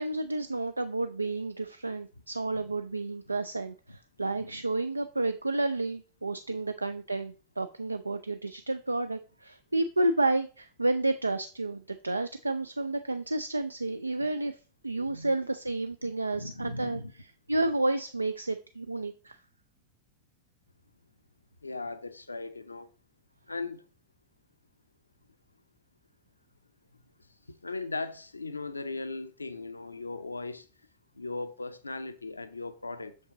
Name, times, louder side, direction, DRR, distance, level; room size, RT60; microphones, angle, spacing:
voice 1, 0.0-14.6 14.8-17.0 17.5-19.4, right 2 dB, 80° right, 0.3 m, -31 dB
voice 2, 4.3-4.6 15.0-15.3 16.0-17.1 21.6-22.9 23.5-23.8 27.6-30.7 31.1-33.3, left 3 dB, 80° left, 0.6 m, -38 dB
6.7 x 5.3 x 3.8 m
figure-of-eight pair, 90°, 0 cm